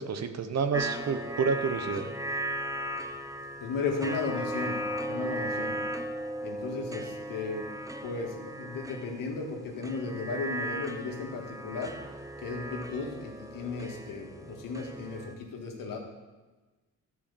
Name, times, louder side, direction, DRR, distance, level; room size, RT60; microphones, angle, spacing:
voice 1, 0.0-2.1, right 5 dB, 50° right, 9 dB, 0.8 m, -29 dB
sound 1, 0.7-15.3, right 1 dB, 10° right, 0.6 m, -37 dB
voice 2, 3.6-4.8 5.1-5.8 6.4-7.7 8.0-12.0 12.4-16.0, left 4 dB, 75° left, 1 dB, 1.8 m, -35 dB
12.0 x 4.8 x 6.9 m, 1.2 s
cardioid pair, 120°, 34 cm